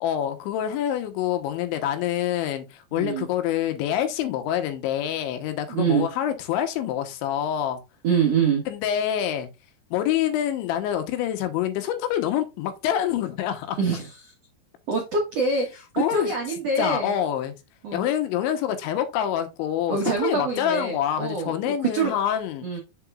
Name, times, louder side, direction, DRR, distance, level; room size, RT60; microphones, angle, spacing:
voice 1, 0.0-7.8 8.7-9.5 9.9-13.8 16.0-16.3 16.8-17.6 17.9-22.8, left 10 dB, 85° left, 3.4 m, -26 dB
voice 2, 2.9-3.3 5.7-6.1 8.0-8.6 13.8-14.3 14.9-17.1 17.8-18.1 19.9-22.1 22.6-22.8, right 5 dB, 75° right, 1.4 m, -25 dB
7.1 x 7.0 x 2.4 m
omnidirectional pair, 5.2 m